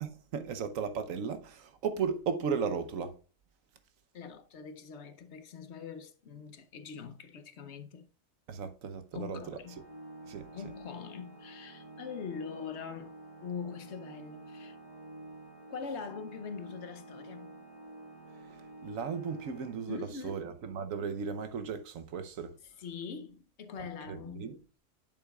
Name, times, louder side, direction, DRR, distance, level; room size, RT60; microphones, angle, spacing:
voice 1, 0.0-3.1 8.5-9.6 10.3-10.5 18.5-22.5 23.8-24.6, right 6 dB, 85° right, 1.2 m, -36 dB
voice 2, 4.1-8.1 9.1-9.8 10.5-13.1 13.4-14.8 15.7-17.6 19.9-20.4 22.6-24.6, left 6 dB, 60° left, 1.0 m, -43 dB
Organ, 9.6-20.4, right 2 dB, 35° right, 1.7 m, -50 dB
8.7 x 7.2 x 2.3 m
omnidirectional pair, 1.4 m